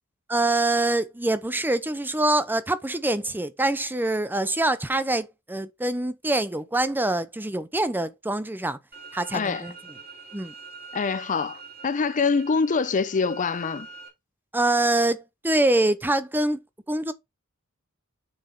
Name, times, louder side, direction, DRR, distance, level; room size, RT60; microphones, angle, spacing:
voice 1, 0.3-8.8 9.1-9.7 10.3-10.5 14.5-16.6 16.9-17.1, right 2 dB, 10° right, 0.7 m, -25 dB
sound 1, 8.9-14.1, right 4 dB, 45° right, 3.0 m, -44 dB
voice 2, 9.3-9.6 10.9-13.9, left 5 dB, 35° left, 0.5 m, -25 dB
6.5 x 5.9 x 4.5 m
head